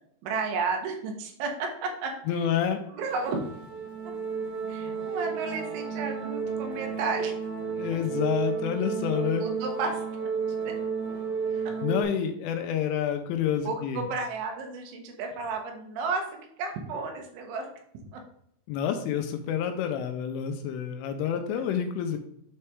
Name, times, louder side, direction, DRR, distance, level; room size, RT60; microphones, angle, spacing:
voice 1, 0.2-2.5 2.9-3.5 4.7-7.3 9.4-10.0 13.7-17.7 18.1-18.2, right 4 dB, 80° right, 3 dB, 3.7 m, -32 dB
voice 2, 2.3-2.8 7.8-9.4 11.5-14.0 18.7-22.2, left 9 dB, 85° left, 6 dB, 3.2 m, -28 dB
sound 1, 3.0-12.0, right 6 dB, 65° right, 2.5 m, -32 dB
9.6 x 4.3 x 3.5 m, 0.70 s
omnidirectional pair, 5.6 m